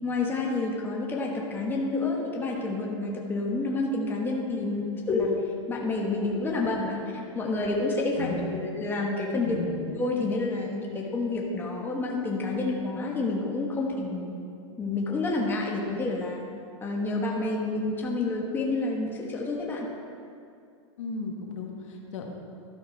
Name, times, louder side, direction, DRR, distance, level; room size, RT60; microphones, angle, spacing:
voice 1, 0.0-5.4 5.7-9.5 10.0-14.3 14.8-16.4 16.8-19.9, left 3 dB, 15° left, -2 dB, 1.2 m, -29 dB
voice 2, 8.2-8.6 9.4-9.8 21.0-22.2, left 3 dB, 75° left, 1 dB, 1.5 m, -35 dB
12.5 x 5.8 x 4.4 m, 2.4 s
supercardioid pair, 140°, 16 cm